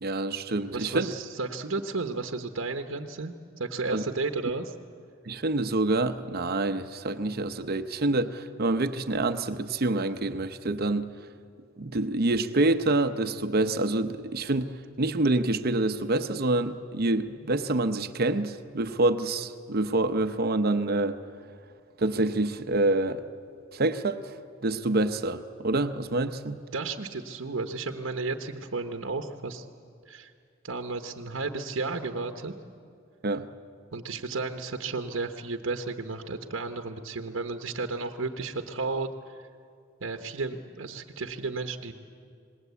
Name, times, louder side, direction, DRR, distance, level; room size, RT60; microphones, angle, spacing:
voice 1, 0.0-1.1 3.9-4.0 5.3-11.1 11.8-14.7 15.0-21.2 22.0-23.2 23.7-24.4 24.6-26.6 33.2-33.5, right 2 dB, 50° right, 0.8 m, -27 dB
voice 2, 0.7-4.7 26.7-29.7 30.1-30.3 30.6-32.5 33.9-39.4 40.0-41.9, right 3 dB, 75° right, 1.0 m, -33 dB
26.0 x 20.0 x 8.2 m
head